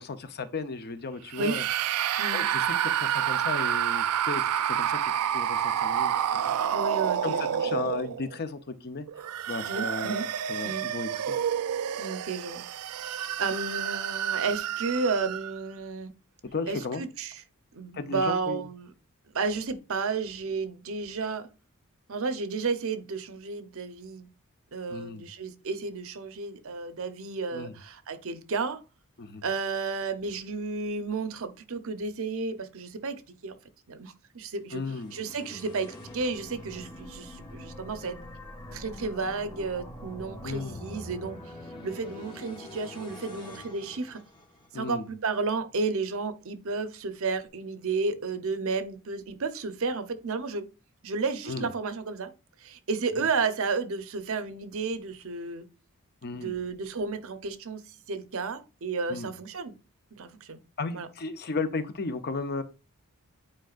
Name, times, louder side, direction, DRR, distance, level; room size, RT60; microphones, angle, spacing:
voice 1, 0.0-1.6 2.1-5.0 5.3-6.4 7.2-9.1 9.5-10.2 10.5-11.4 16.5-17.0 17.9-18.6 24.9-25.3 27.5-27.7 29.2-29.4 34.7-35.1 40.4-40.8 44.7-45.0 51.5-51.7 53.2-53.3 56.2-56.5 59.1-59.3 60.8-62.6, left 4 dB, 45° left, 0.7 m, -35 dB
sound 1, 1.3-8.4 9.1-15.6, right 9 dB, 85° right, 0.4 m, -29 dB
voice 2, 6.7-7.9 9.7-10.2 10.6-10.9 12.0-12.6 13.4-16.1 16.7-17.4 17.7-18.9 19.3-21.5 22.1-24.3 24.7-28.8 29.4-33.6 33.9-34.8 35.1-38.2 38.7-41.4 41.8-44.2 44.7-50.7 51.0-52.3 52.6-55.6 56.4-57.8 58.1-59.7 60.1-60.6 60.9-61.1, right 4 dB, 65° right, 0.7 m, -32 dB
sound 2, 34.7-44.9, left 1 dB, 20° left, 1.2 m, -44 dB
8.7 x 4.5 x 2.4 m
head